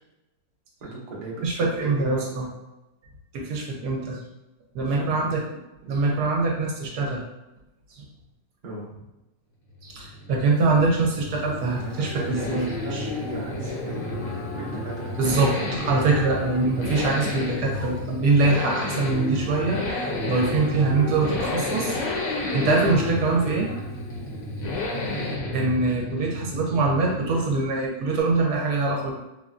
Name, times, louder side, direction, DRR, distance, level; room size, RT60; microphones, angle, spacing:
voice 1, 0.8-2.3 4.8-5.1 8.6-9.1 11.8-14.2 14.5-15.7 22.6-22.8 25.1-25.4, right 2 dB, 90° right, -5 dB, 0.3 m, -37 dB
voice 2, 1.4-2.5 3.3-4.2 4.7-5.4 5.8-7.2 7.9-8.0 9.8-13.1 15.2-19.8 20.3-23.7 25.5-29.1, right 3 dB, 70° right, -1 dB, 1.1 m, -24 dB
sound 1, 9.7-27.7, left 2 dB, 65° left, 0.7 m, -32 dB
Livestock farm animals working animals, 10.5-25.3, left 3 dB, 85° left, 1.4 m, -37 dB
3.7 x 2.2 x 2.4 m, 0.96 s
omnidirectional pair, 2.0 m